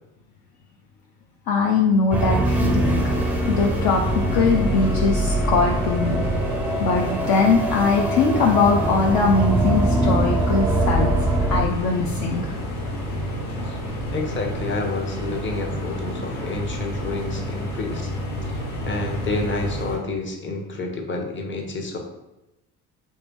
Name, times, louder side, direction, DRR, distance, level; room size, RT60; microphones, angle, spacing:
voice 1, 1.5-3.0 3.5-4.0 4.3-6.2 6.8-11.1 11.5-12.5, left 4 dB, 50° left, 0 dB, 0.5 m, -21 dB
sound 1, 2.1-11.6, right 1 dB, 5° right, 0.4 m, -23 dB
sound 2, 2.8-20.0, equal, 70° left, 1.1 m, -30 dB
voice 2, 14.1-18.1 18.4-18.5 18.9-22.0, left 2 dB, 25° left, 1 dB, 0.8 m, -29 dB
3.0 x 2.7 x 3.5 m, 0.94 s
hypercardioid pair, 55°, 46 cm